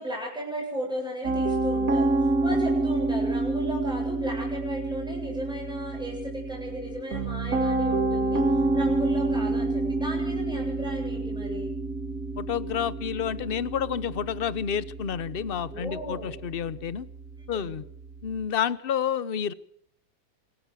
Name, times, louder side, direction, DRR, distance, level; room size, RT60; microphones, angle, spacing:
voice 1, 0.0-8.4 8.7-11.7 15.7-16.4 17.5-17.8, equal, ahead, -1 dB, 7.8 m, -36 dB
Piano, 1.2-18.4, right 2 dB, 55° right, 2.4 m, -28 dB
voice 2, 12.4-17.1 17.5-17.8 18.2-19.5, left 8 dB, 40° left, 17 dB, 0.9 m, -29 dB
26.0 x 13.5 x 7.7 m, 0.68 s
omnidirectional pair, 1.8 m